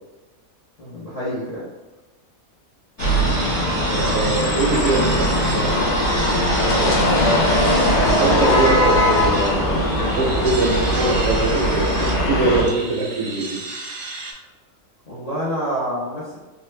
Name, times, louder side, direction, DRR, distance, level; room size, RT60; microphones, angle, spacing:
voice 1, 0.8-1.7 15.1-16.4, equal, 35° left, -9 dB, 0.7 m, -27 dB
sound 1, 3.0-12.6, equal, 85° left, 1.2 m, -20 dB
sound 2, 3.0-14.3, right 2 dB, 90° right, 0.4 m, -31 dB
voice 2, 3.9-6.1 6.8-7.4 8.0-13.6, right 3 dB, 70° right, 0 dB, 1.0 m, -23 dB
sound 3, 7.9-12.9, right 1 dB, 40° right, 0.6 m, -36 dB
3.2 x 2.1 x 3.1 m, 1.2 s
omnidirectional pair, 1.5 m